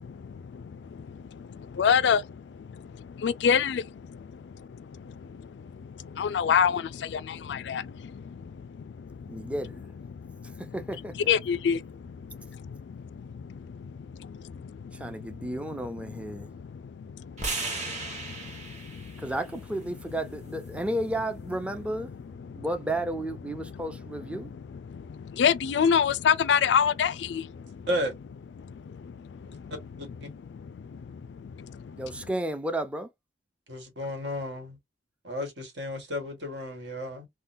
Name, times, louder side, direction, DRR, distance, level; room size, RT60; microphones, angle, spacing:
voice 1, 0.0-9.5 10.1-10.7 11.1-19.3 20.7-20.8 22.5-22.6 23.6-24.0 24.3-27.9 28.6-29.7 30.5-32.0, left 7 dB, 80° left, 0.3 m, -30 dB
voice 2, 9.3-9.8 10.6-11.3 14.9-16.5 19.2-22.1 22.5-24.5 32.0-33.1, right 1 dB, 5° right, 0.4 m, -32 dB
sound 1, 17.4-21.6, right 3 dB, 40° right, 1.5 m, -38 dB
voice 3, 33.7-34.8 35.2-37.3, equal, 80° right, 1.5 m, -33 dB
3.7 x 2.2 x 2.6 m
head